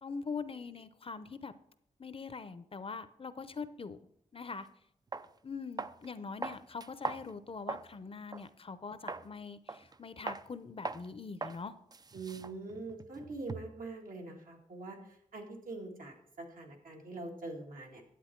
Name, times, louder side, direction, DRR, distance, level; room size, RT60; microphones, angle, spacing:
voice 1, 0.0-1.5 2.0-4.0 4.3-4.7 5.4-11.7, left 5 dB, 40° left, 13 dB, 0.7 m, -43 dB
sound 1, 4.5-4.6 5.1-5.3 5.8-6.1 6.4-7.9 8.3-8.5 9.1-9.3 9.7-10.0 10.3-10.5 10.8-11.1 11.4-11.6 11.9-13.8, right 3 dB, 30° right, 0.4 m, -40 dB
voice 2, 12.1-18.0, right 3 dB, 75° right, 1 dB, 2.0 m, -44 dB
10.0 x 8.0 x 4.5 m, 0.74 s
cardioid pair, 70°, 14 cm